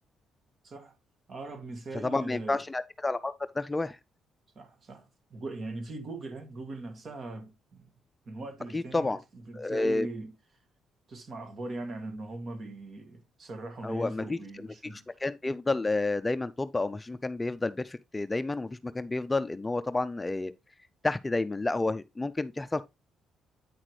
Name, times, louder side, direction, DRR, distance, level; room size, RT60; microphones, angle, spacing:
voice 1, 0.6-1.0 1.3-2.6 4.6-7.9 8.3-10.3 11.1-15.1, right 2 dB, 45° right, 2.1 m, -40 dB
voice 2, 2.0-4.0 8.7-9.2 9.5-10.1 13.8-14.7 14.9-20.5 21.0-22.8, left 2 dB, 15° left, 0.4 m, -30 dB
8.9 x 5.8 x 3.2 m
cardioid pair, 90°, 0 cm